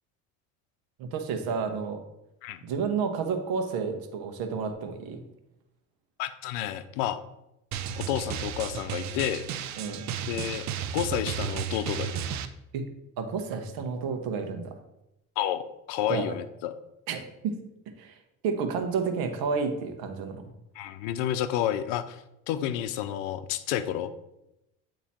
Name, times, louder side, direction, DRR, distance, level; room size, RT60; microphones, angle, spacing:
voice 1, 1.0-2.0 2.6-5.2 9.8-10.0 12.7-12.8 13.2-14.7 16.1-16.3 17.1-17.6 18.0-20.4, right 5 dB, 65° right, 7 dB, 1.1 m, -31 dB
voice 2, 6.2-7.2 7.9-9.4 10.3-10.6 10.9-12.1 15.4-16.7 20.8-22.2 22.5-24.1, left 11 dB, 75° left, 12 dB, 0.6 m, -30 dB
Drum, 7.7-12.5, right 8 dB, 45° right, 0.5 m, -33 dB
8.5 x 3.0 x 4.2 m, 0.87 s
supercardioid pair, 80°, 39 cm